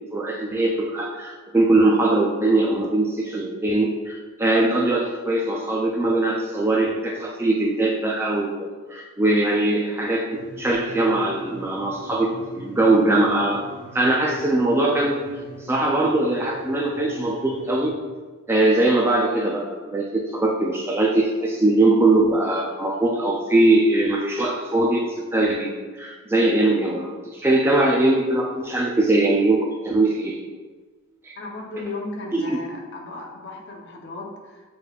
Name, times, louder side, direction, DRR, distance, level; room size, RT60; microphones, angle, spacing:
voice 1, 0.1-12.3 12.6-13.6 13.9-15.2 15.6-17.9 18.5-25.0 25.3-25.7 26.0-30.4 31.2-31.4 32.3-32.6, right 2 dB, 10° right, -1 dB, 0.3 m, -21 dB
sound 1, 10.3-17.9, equal, 90° left, 0.8 m, -42 dB
voice 2, 31.4-34.7, left 2 dB, 50° left, 0 dB, 0.7 m, -35 dB
6.6 x 3.2 x 2.3 m, 1.4 s
head